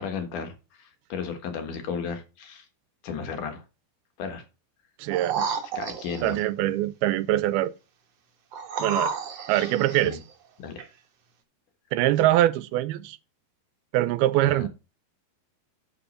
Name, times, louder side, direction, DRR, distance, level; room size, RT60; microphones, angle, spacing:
voice 1, 0.0-2.7 3.0-3.6 4.2-4.4 5.8-6.4 9.5-9.7 10.0-10.2 10.6-10.7 14.4-14.7, left 6 dB, 65° left, 2.7 m, -34 dB
voice 2, 5.0-5.5 6.2-7.7 8.8-9.2 9.5-10.2 11.9-13.2 13.9-14.7, right 14 dB, 85° right, 2.6 m, -23 dB
sound 1, 5.1-6.5 8.5-10.1 10.8-10.9, right 5 dB, 55° right, 2.2 m, -31 dB
8.1 x 7.1 x 4.2 m
omnidirectional pair, 4.4 m